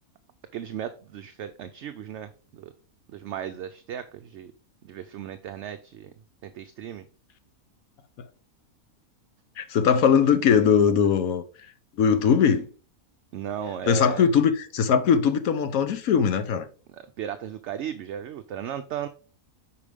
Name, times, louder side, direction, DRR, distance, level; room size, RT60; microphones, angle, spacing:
voice 1, 0.5-2.7 3.1-4.5 4.8-6.1 6.4-7.1 13.3-14.3 16.9-19.1, right 8 dB, 65° right, 0.7 m, -35 dB
voice 2, 9.6-11.4 12.0-12.7 13.9-16.7, left 7 dB, 75° left, 1.2 m, -20 dB
8.5 x 4.9 x 3.4 m
omnidirectional pair, 1.5 m